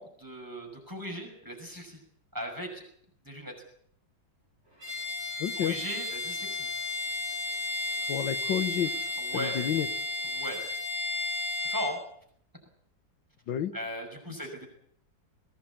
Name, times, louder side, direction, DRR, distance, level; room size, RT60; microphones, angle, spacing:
voice 1, 0.0-2.0 2.3-2.8 3.2-3.5 5.3-6.7 9.2-9.6 10.3-10.6 11.6-12.0 13.7-14.7, equal, 10° right, 2 dB, 6.0 m, -38 dB
Bowed string instrument, 4.8-12.0, left 3 dB, 35° right, 8.1 m, -33 dB
voice 2, 5.4-5.7 8.1-8.9 9.3-9.9 13.5-13.7 14.3-14.4, left 10 dB, 85° left, 13 dB, 1.8 m, -30 dB
22.0 x 17.5 x 8.6 m, 0.66 s
omnidirectional pair, 2.0 m